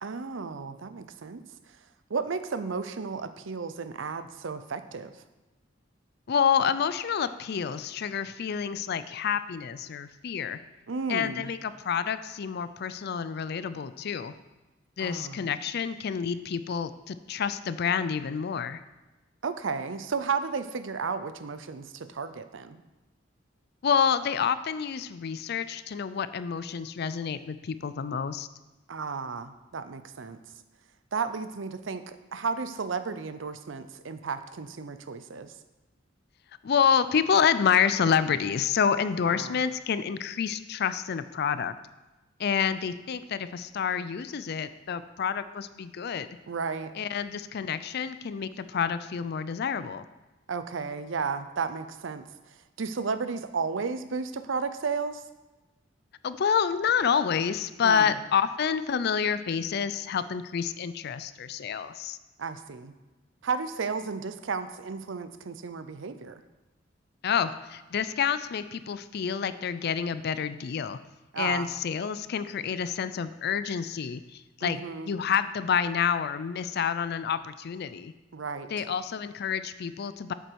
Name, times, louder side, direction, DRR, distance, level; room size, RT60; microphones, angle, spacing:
voice 1, 0.0-1.4 2.1-5.2 10.9-11.5 15.0-15.5 19.4-22.8 28.9-30.4 31.1-35.5 39.2-39.6 46.5-46.9 50.5-52.3 52.8-55.2 57.8-58.2 62.4-62.9 63.4-66.4 71.3-71.7 74.6-75.2 78.3-78.8, right 5 dB, 70° right, 11 dB, 0.6 m, -33 dB
voice 2, 6.3-10.6 11.1-14.3 15.0-18.8 23.8-28.5 36.6-41.7 42.4-46.3 47.0-50.1 56.2-62.2 67.2-71.0 71.4-74.8 75.1-78.1 78.7-80.3, left 7 dB, 55° left, 13 dB, 0.4 m, -28 dB
8.1 x 7.4 x 4.6 m, 1.1 s
head